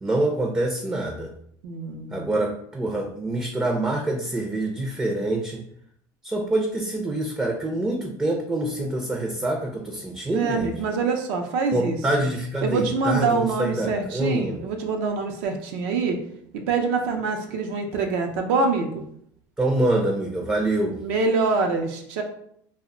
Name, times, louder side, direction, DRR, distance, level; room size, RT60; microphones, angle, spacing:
voice 1, 0.0-1.3 2.1-5.6 6.2-10.7 11.7-14.6 19.6-21.0, right 1 dB, 10° right, 0 dB, 0.4 m, -25 dB
voice 2, 1.6-2.3 10.3-12.0 12.6-16.2 16.5-19.0 21.0-22.2, right 4 dB, 80° right, 3 dB, 0.5 m, -25 dB
2.1 x 2.0 x 3.6 m, 0.68 s
supercardioid pair, 115°, 9 cm